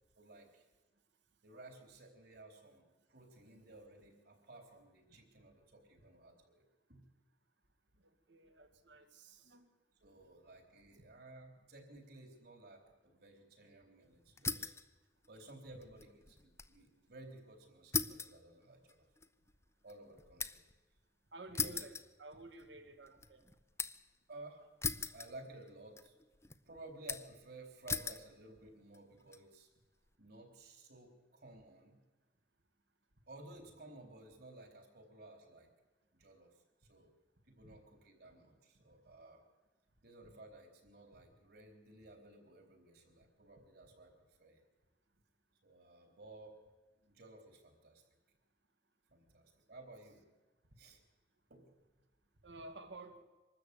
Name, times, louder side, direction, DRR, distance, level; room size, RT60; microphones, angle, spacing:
voice 1, 0.2-0.7 1.4-6.6 6.9-7.1 10.0-14.7 15.3-19.0 19.8-20.6 21.6-21.8 24.3-24.6 25.1-26.1 26.6-29.7 30.2-32.0 33.3-35.7 36.1-36.6 36.9-37.1 37.4-39.4 40.0-44.1 44.4-44.6 45.6-46.6 47.0-48.0 49.1-50.2 50.8-51.0 51.5-51.8, right 2 dB, 60° right, 4 dB, 4.0 m, -55 dB
voice 2, 8.3-9.7 21.3-23.4 37.6-37.7 52.4-53.2, right 2 dB, 75° right, 7 dB, 2.2 m, -53 dB
sound 1, 14.4-14.9 15.2-16.8 17.1-17.2 17.9-20.8 21.5-22.7 23.1-24.1 24.8-25.7 26.0-26.5 27.1-27.4 27.9-28.3 28.9-29.4, left 5 dB, 15° left, 0.7 m, -40 dB
25.0 x 13.0 x 8.6 m, 1.2 s
head